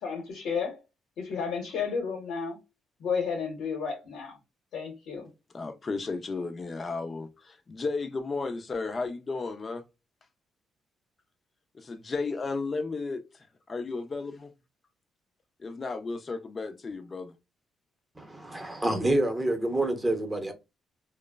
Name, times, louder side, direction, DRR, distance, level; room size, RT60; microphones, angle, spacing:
voice 1, 0.0-0.8 1.2-2.6 3.0-4.4 4.7-5.3, left 6 dB, 80° left, 0.9 m, -32 dB
voice 2, 5.5-9.8 11.7-13.2 13.7-14.5 15.6-17.3, left 3 dB, 35° left, 0.5 m, -34 dB
voice 3, 18.2-20.5, right 1 dB, 15° right, 0.8 m, -27 dB
2.9 x 2.0 x 2.3 m
cardioid pair, 90°, 0 cm